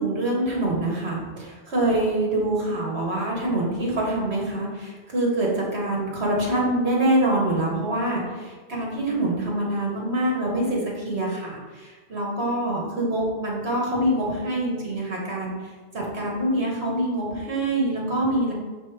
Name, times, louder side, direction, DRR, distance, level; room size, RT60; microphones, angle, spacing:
voice 1, 0.0-15.5 15.9-18.5, right 1 dB, 75° right, -3 dB, 1.8 m, -25 dB
5.4 x 3.6 x 5.0 m, 1.4 s
omnidirectional pair, 1.1 m